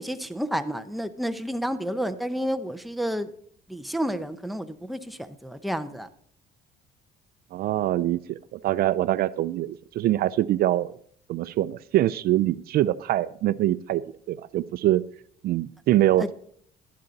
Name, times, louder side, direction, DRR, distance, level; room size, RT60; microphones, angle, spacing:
voice 1, 0.0-3.3 3.7-6.1 16.2-16.3, equal, ahead, 9 dB, 0.7 m, -30 dB
voice 2, 7.5-10.9 11.3-15.0 15.4-16.3, right 14 dB, 65° right, 17 dB, 0.4 m, -24 dB
12.0 x 10.5 x 4.1 m, 0.63 s
cardioid pair, 110°, 17 cm